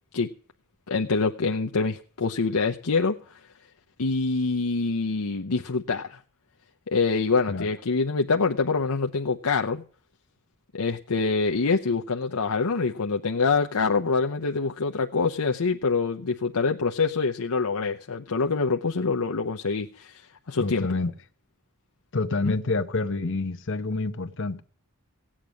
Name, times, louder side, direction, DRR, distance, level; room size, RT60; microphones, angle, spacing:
voice 1, 0.9-3.4 4.0-6.2 6.9-9.8 10.7-20.2 20.5-20.9 22.4-22.5, left 4 dB, 90° left, 0.8 m, -25 dB
voice 2, 20.6-21.1 22.1-24.6, left 3 dB, 60° left, 1.0 m, -28 dB
16.5 x 8.8 x 6.4 m
head